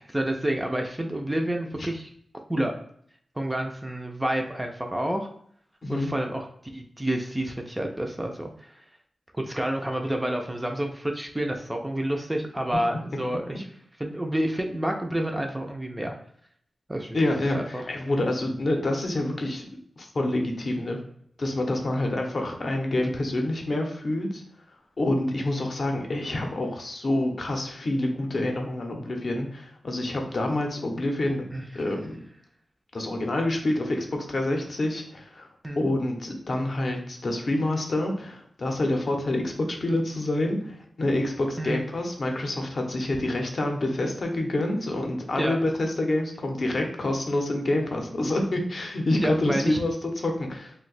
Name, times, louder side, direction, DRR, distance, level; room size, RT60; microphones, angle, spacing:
voice 1, 0.0-2.1 2.5-2.7 3.4-5.3 5.9-6.5 6.7-8.8 9.3-13.7 14.0-16.1 16.9-17.2 17.5-17.9 31.5-31.6 35.6-35.8 41.6-41.8 45.4-45.6 49.2-49.8, right 1 dB, 10° right, 2 dB, 0.3 m, -29 dB
voice 2, 17.1-19.6 20.0-21.0 21.4-24.4 25.0-31.5 31.7-32.3 32.9-35.5 35.8-50.7, left 1 dB, 50° left, 2 dB, 0.5 m, -27 dB
2.6 x 2.1 x 3.9 m, 0.64 s
wide cardioid pair, 150°, 0 cm